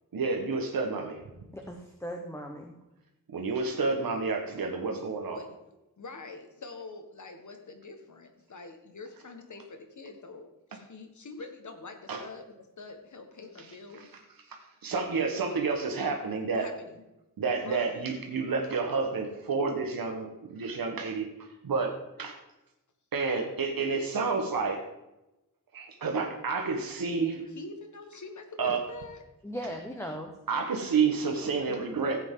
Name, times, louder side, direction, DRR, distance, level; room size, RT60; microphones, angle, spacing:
voice 1, 0.1-1.2 3.3-5.4 12.1-12.2 14.5-16.7 17.4-22.4 23.1-24.9 25.7-27.4 28.6-28.8 30.5-32.2, right 4 dB, 75° right, 3 dB, 1.5 m, -30 dB
voice 2, 1.5-2.7 29.4-30.3, equal, 5° left, 2 dB, 1.0 m, -38 dB
voice 3, 6.0-14.2 16.5-17.0 17.6-18.1 27.4-29.2, left 3 dB, 55° left, 5 dB, 1.6 m, -45 dB
15.5 x 8.3 x 3.8 m, 0.95 s
wide cardioid pair, 130°, 35 cm